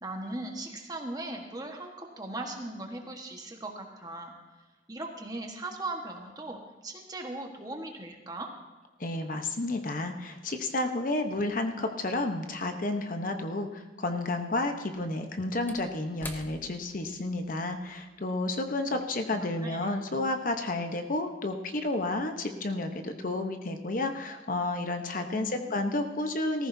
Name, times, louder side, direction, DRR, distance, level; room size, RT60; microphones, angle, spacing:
voice 1, 0.0-4.3 4.9-8.5 18.9-19.1 19.3-19.9 25.3-25.8, right 2 dB, 20° right, 2 dB, 1.4 m, -39 dB
voice 2, 9.0-26.7, left 2 dB, 50° left, 6 dB, 1.0 m, -31 dB
Slam / Wood, 15.3-19.5 19.8-20.0, left 1 dB, 10° left, 0.8 m, -49 dB
18.5 x 14.5 x 2.7 m, 1.2 s
head